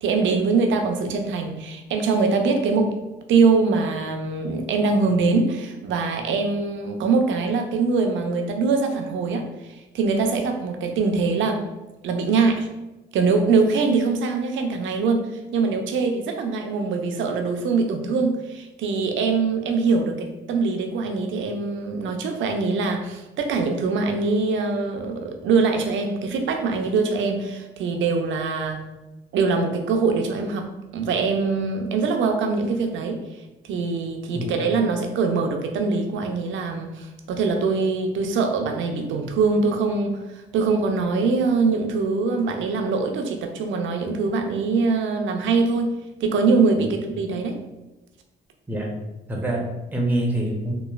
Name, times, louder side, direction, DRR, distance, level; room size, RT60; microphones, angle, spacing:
voice 1, 0.0-9.5 9.9-11.7 12.0-12.7 13.1-28.8 29.3-33.3 33.7-47.6, right 4 dB, 70° right, 4 dB, 0.5 m, -23 dB
voice 2, 49.3-50.7, right 1 dB, 10° right, -1 dB, 0.6 m, -25 dB
3.0 x 2.3 x 2.3 m, 1.0 s
cardioid pair, 90°, 20 cm